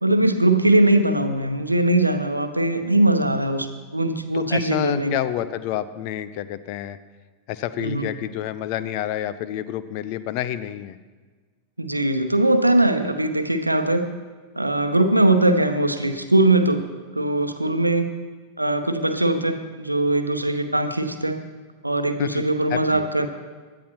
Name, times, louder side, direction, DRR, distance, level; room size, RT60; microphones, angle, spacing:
voice 1, 0.0-5.1 7.8-8.1 11.8-14.1 14.5-16.8 17.1-18.1 18.6-21.4 21.8-23.3, right 1 dB, 85° right, 8 dB, 0.8 m, -21 dB
voice 2, 4.3-7.0 7.5-11.0 22.2-22.4 22.7-23.1, left 12 dB, 45° left, 13 dB, 0.5 m, -28 dB
16.5 x 12.0 x 2.9 m, 1.4 s
figure-of-eight pair, 90°, 0 cm